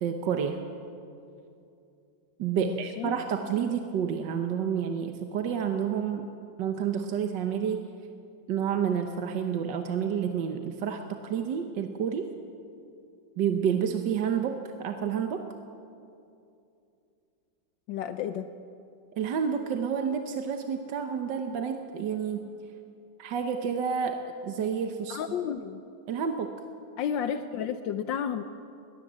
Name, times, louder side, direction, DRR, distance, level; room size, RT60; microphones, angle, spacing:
voice 1, 0.0-0.6 2.4-6.3 6.6-7.9 8.5-12.3 13.4-15.4 19.2-22.5 23.2-25.2 26.1-26.5, right 7 dB, 70° right, 5 dB, 1.7 m, -29 dB
voice 2, 2.6-3.1 17.9-18.5 25.1-25.8 27.0-28.4, left 8 dB, 80° left, 9 dB, 1.5 m, -32 dB
21.0 x 19.5 x 7.5 m, 2.6 s
omnidirectional pair, 2.0 m